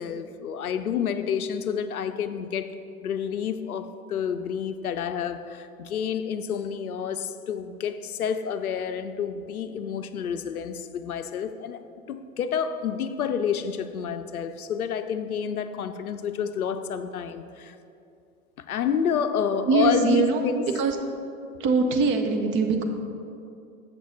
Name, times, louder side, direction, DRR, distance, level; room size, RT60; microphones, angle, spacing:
voice 1, 0.0-11.8 12.1-17.8 18.6-20.6, left 7 dB, 85° left, 0.5 m, -29 dB
voice 2, 19.5-21.0 21.6-22.8, right 4 dB, 25° right, 0.6 m, -23 dB
7.4 x 6.3 x 3.9 m
figure-of-eight pair, 90°, 43 cm